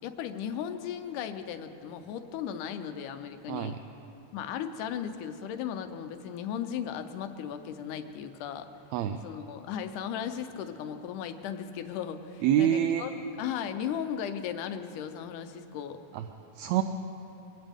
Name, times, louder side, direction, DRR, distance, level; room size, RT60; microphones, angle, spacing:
voice 1, 0.0-3.8 4.3-8.7 9.2-16.0, left 8 dB, 85° left, 8 dB, 2.3 m, -36 dB
voice 2, 3.5-3.8 8.9-9.2 12.4-13.1 16.1-16.2 16.6-16.8, right 11 dB, 80° right, 8 dB, 1.7 m, -26 dB
24.0 x 16.5 x 3.5 m, 2.9 s
omnidirectional pair, 3.6 m